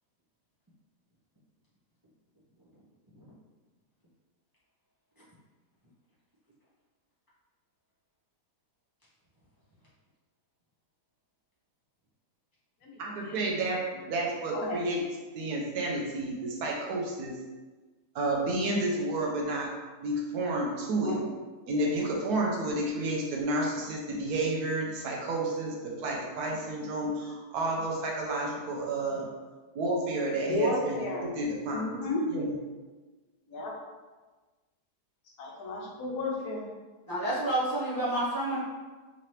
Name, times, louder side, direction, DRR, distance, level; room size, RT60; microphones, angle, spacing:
voice 1, 13.0-15.0 15.3-17.4 18.1-19.7 20.0-21.2 21.7-29.3 29.7-31.9 32.3-32.5, right 2 dB, 75° right, -1 dB, 1.2 m, -31 dB
voice 2, 30.5-31.3 31.7-32.2 33.5-33.7 35.4-36.6, left 2 dB, 70° left, -2 dB, 1.2 m, -32 dB
voice 3, 37.1-38.6, right 1 dB, 25° right, -9 dB, 0.5 m, -29 dB
3.8 x 2.8 x 3.2 m, 1.3 s
omnidirectional pair, 1.8 m